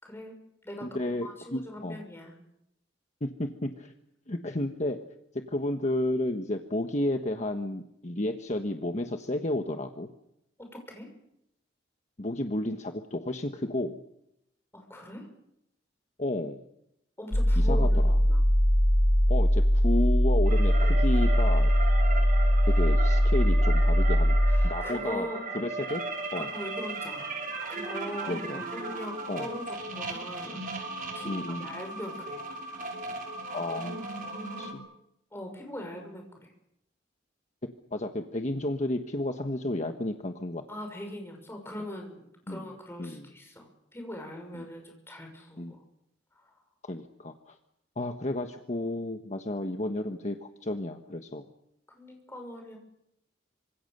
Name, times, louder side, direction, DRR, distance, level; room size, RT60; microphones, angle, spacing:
voice 1, 0.0-2.3 10.6-11.1 14.7-15.3 17.2-18.4 24.5-25.4 26.3-27.3 27.7-30.9 31.1-32.4 35.3-36.5 40.7-45.8 46.3-46.5 51.9-52.8, left 1 dB, 15° left, 3 dB, 6.2 m, -41 dB
voice 2, 0.8-2.0 3.2-3.9 4.3-5.0 5.3-10.1 12.2-14.0 16.2-16.6 17.6-18.1 19.3-21.7 22.7-24.4 24.6-25.3 25.5-26.0 26.3-26.5 28.3-28.6 29.3-29.5 31.3-31.6 33.5-34.1 34.6-34.8 37.9-40.6 42.5-42.6 43.0-43.3 44.5-44.7 45.6-45.7 46.8-47.6 48.0-51.4, left 1 dB, 40° left, 5 dB, 1.3 m, -32 dB
sound 1, 17.3-24.7, equal, 85° left, 2.5 m, -21 dB
sound 2, 20.5-34.7, right 3 dB, 50° right, 5.1 m, -36 dB
26.0 x 26.0 x 6.8 m, 0.81 s
head